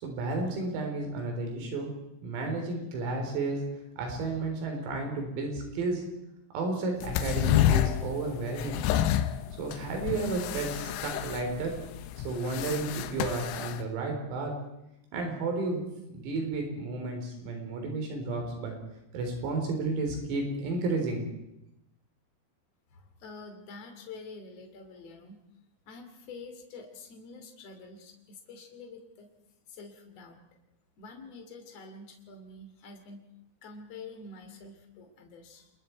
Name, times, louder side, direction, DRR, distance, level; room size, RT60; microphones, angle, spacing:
voice 1, 0.0-1.9 2.2-3.6 4.0-6.0 6.5-8.8 9.6-11.7 12.2-14.5 15.1-15.8 16.1-18.7 19.1-21.2, right 3 dB, 85° right, 3 dB, 6.6 m, -32 dB
sound 1, 7.0-13.8, left 11 dB, 85° left, 3.6 m, -29 dB
voice 2, 22.9-25.4 25.9-29.3 29.7-30.4 31.0-33.2 33.6-35.7, left 3 dB, 40° left, 4 dB, 3.1 m, -47 dB
29.0 x 21.0 x 4.6 m, 0.86 s
omnidirectional pair, 6.0 m